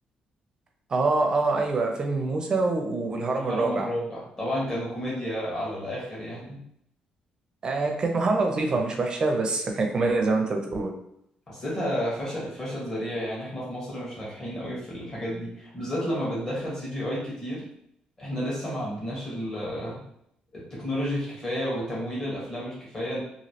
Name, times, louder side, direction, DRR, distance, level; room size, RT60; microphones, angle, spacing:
voice 1, 0.9-3.9 7.6-10.9, right 3 dB, 30° right, 3 dB, 0.5 m, -25 dB
voice 2, 3.2-6.6 11.5-17.6 18.2-20.0 20.5-23.2, equal, 25° left, -6 dB, 1.3 m, -31 dB
3.0 x 2.7 x 2.8 m, 0.72 s
cardioid pair, 150°, 3 cm